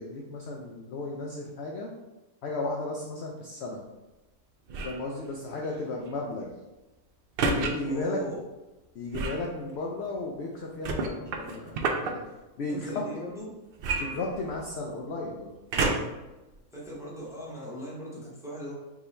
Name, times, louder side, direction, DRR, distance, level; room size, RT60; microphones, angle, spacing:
voice 1, 0.0-1.9 2.4-3.8 4.8-6.6 7.5-8.2 8.9-12.2 12.6-13.0 14.0-15.5, left 2 dB, 65° left, -2 dB, 0.7 m, -34 dB
sound 1, 4.7-5.1 7.4-7.7 9.1-9.5 10.8-12.1 13.8-14.8 15.7-16.2 16.9-17.0, right 3 dB, 90° right, 0.5 m, -29 dB
voice 2, 7.9-8.4 12.7-13.5 16.7-18.7, right 1 dB, ahead, -5 dB, 0.8 m, -38 dB
4.7 x 2.8 x 3.2 m, 1.1 s
omnidirectional pair, 1.5 m